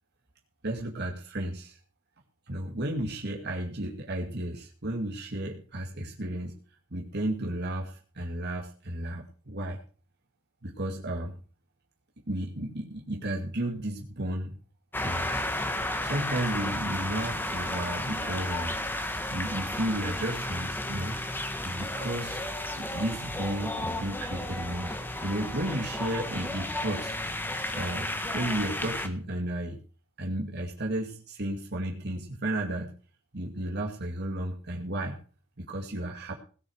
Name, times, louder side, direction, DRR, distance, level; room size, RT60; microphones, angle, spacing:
voice 1, 0.6-1.8 2.5-6.6 6.9-9.8 10.6-11.4 12.3-14.6 15.0-15.5 16.0-18.8 19.3-21.2 21.6-22.4 22.8-25.0 25.2-27.1 27.7-29.8 30.2-32.9 33.3-35.2 35.6-36.4, right 1 dB, 55° right, -1 dB, 2.4 m, -33 dB
sound 1, 14.9-29.1, left 1 dB, 10° left, 1.5 m, -33 dB
17.5 x 6.6 x 6.4 m, 0.39 s
head